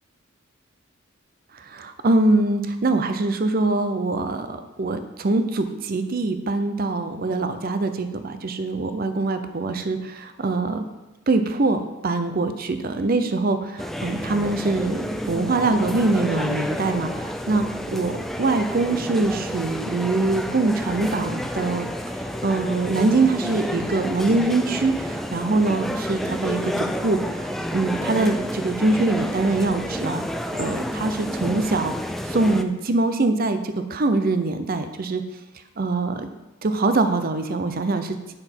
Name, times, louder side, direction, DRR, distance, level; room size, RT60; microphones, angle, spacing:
voice 1, 1.5-10.8 11.3-30.2 30.5-31.9 32.2-35.2 35.8-36.3 36.6-38.2, right 3 dB, 45° right, 9 dB, 0.6 m, -23 dB
sound 1, 13.8-32.6, equal, ahead, 0.3 m, -30 dB
8.8 x 5.9 x 4.5 m, 1.1 s
head